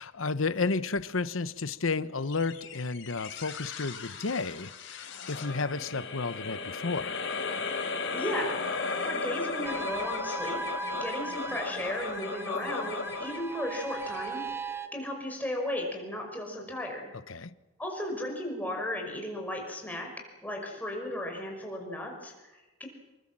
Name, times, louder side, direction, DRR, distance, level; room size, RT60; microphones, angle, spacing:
voice 1, 0.0-7.2 17.3-17.5, left 4 dB, 85° left, 1.0 m, -32 dB
Oi oi oi, 2.3-14.9, left 4 dB, 65° left, 3.6 m, -36 dB
voice 2, 8.1-8.6 9.0-10.6 10.9-14.4 14.9-17.1 17.8-20.1 20.4-22.9, left 1 dB, 10° left, 5.6 m, -35 dB
sound 1, 9.6-14.9, right 3 dB, 10° right, 1.1 m, -38 dB
28.0 x 22.5 x 7.6 m
head